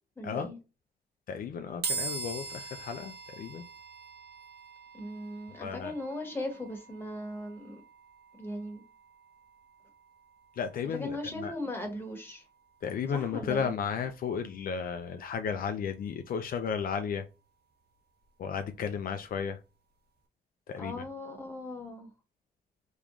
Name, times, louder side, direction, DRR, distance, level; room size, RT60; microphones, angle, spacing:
voice 1, 0.2-0.6 4.9-7.8 8.4-8.8 10.9-12.4 13.1-13.8 20.8-22.1, left 1 dB, 15° left, 1.2 m, -38 dB
voice 2, 1.3-3.6 5.6-5.9 10.6-11.5 12.8-17.3 18.4-19.6 20.7-21.0, left 6 dB, 65° left, 0.4 m, -34 dB
sound 1, 1.8-15.2, right 4 dB, 85° right, 1.0 m, -44 dB
3.5 x 3.0 x 2.4 m
cardioid pair, 120°, 16 cm